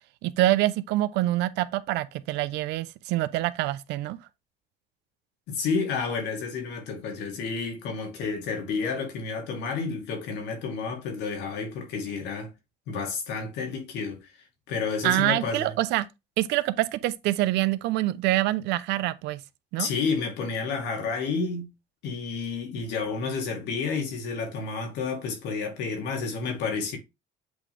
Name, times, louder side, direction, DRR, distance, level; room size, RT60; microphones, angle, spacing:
voice 1, 0.2-4.2 15.0-16.1 16.4-19.4 19.7-19.9, right 16 dB, 90° right, 0.7 m, -25 dB
voice 2, 5.5-12.5 12.9-14.3 14.7-15.7 19.8-21.7 22.0-27.0, left 5 dB, 85° left, 2.7 m, -30 dB
8.0 x 3.7 x 3.4 m
cardioid pair, 110°, 17 cm